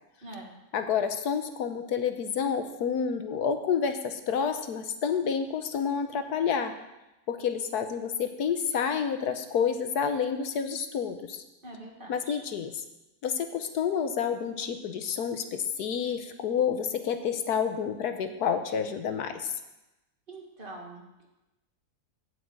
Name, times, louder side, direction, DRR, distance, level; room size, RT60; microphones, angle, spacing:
voice 1, 0.2-0.5 11.6-12.4 20.3-21.3, right 2 dB, 35° right, 0 dB, 1.9 m, -44 dB
voice 2, 0.7-6.7 7.3-11.4 12.1-12.8 13.2-19.6, left 7 dB, 75° left, 8 dB, 1.3 m, -29 dB
8.7 x 7.9 x 8.1 m, 0.97 s
omnidirectional pair, 1.7 m